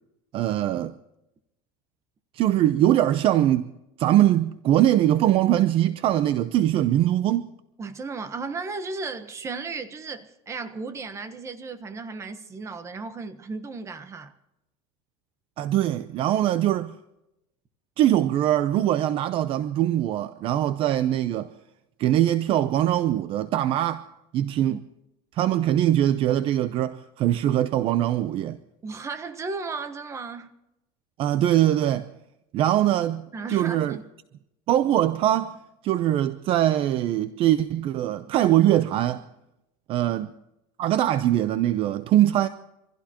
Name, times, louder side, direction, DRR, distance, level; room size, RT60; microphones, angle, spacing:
voice 1, 0.3-0.9 2.3-3.7 4.0-7.5 15.6-17.0 18.0-21.5 22.0-24.0 24.3-24.8 25.3-28.6 31.2-32.1 32.5-34.0 34.7-39.3 39.9-40.3 40.8-42.5, right 12 dB, 40° right, 0.7 m, -22 dB
voice 2, 7.8-14.3 24.7-24.8 28.8-30.5 33.3-34.1, right 4 dB, 20° right, 1.3 m, -35 dB
26.0 x 16.0 x 3.0 m
cardioid pair, 150°, 14 cm